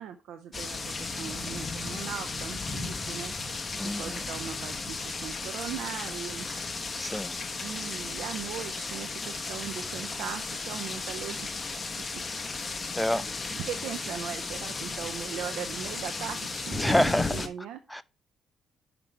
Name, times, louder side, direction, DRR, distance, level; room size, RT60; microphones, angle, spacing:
voice 1, 0.0-6.7 7.6-11.5 13.4-16.9 17.3-18.0, right 9 dB, 85° right, 0.5 m, -39 dB
sound 1, 0.5-17.5, left 3 dB, 30° left, 0.9 m, -35 dB
voice 2, 3.7-4.2 6.9-7.4 12.9-13.3 16.8-17.5 17.9-18.0, left 1 dB, 5° left, 0.4 m, -28 dB
5.9 x 5.2 x 4.5 m
cardioid pair, 90°, 0 cm